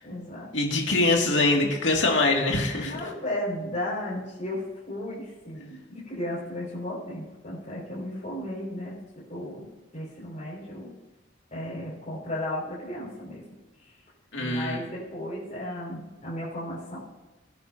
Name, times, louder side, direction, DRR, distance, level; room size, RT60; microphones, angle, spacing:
voice 1, 0.0-0.5 0.8-0.9 2.8-11.0 11.5-13.5 13.8-14.0 14.4-17.0, left 1 dB, 40° left, -10 dB, 5.4 m, -35 dB
voice 2, 0.5-3.0 14.3-14.8, left 2 dB, 70° left, 0 dB, 2.3 m, -23 dB
22.5 x 10.5 x 2.8 m, 1.1 s
head